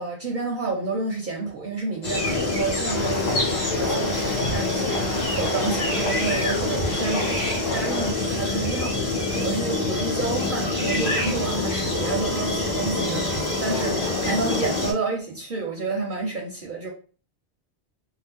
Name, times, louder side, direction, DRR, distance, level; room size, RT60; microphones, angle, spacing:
voice 1, 0.0-7.4 7.7-16.9, right 3 dB, 50° right, 0.7 m, -30 dB
sound 1, 2.0-14.9, left 2 dB, 40° left, 1.1 m, -26 dB
sound 2, 2.8-8.1, left 2 dB, 60° left, 1.0 m, -32 dB
2.7 x 2.0 x 3.5 m
omnidirectional pair, 1.2 m